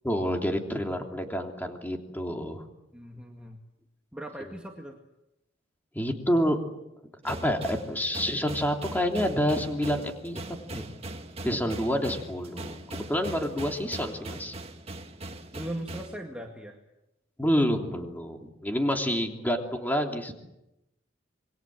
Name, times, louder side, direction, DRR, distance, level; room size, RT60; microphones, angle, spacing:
voice 1, 0.0-2.6 5.9-6.6 7.2-10.4 10.7-10.8 11.4-14.5 17.4-20.3, equal, 10° left, 3 dB, 3.1 m, -28 dB
voice 2, 2.9-3.6 4.1-5.0 15.5-16.8, right 1 dB, 5° right, 1 dB, 2.0 m, -39 dB
sound 1, 7.2-16.2, right 1 dB, 35° right, 1.9 m, -40 dB
27.5 x 22.5 x 7.7 m, 0.91 s
head